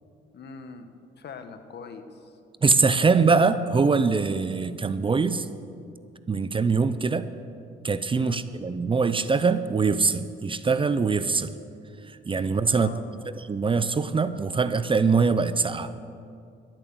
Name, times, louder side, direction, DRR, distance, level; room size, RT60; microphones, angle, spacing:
voice 1, 0.3-2.4 3.0-3.2 3.5-3.6 8.2-8.4 12.7-13.0, left 5 dB, 60° left, 9 dB, 1.2 m, -42 dB
voice 2, 2.6-5.5 6.3-7.3 7.8-11.5 12.3-12.9 13.5-15.9, right 4 dB, 25° right, 13 dB, 0.5 m, -23 dB
12.5 x 8.9 x 7.9 m, 2.4 s
cardioid pair, 90°, 20 cm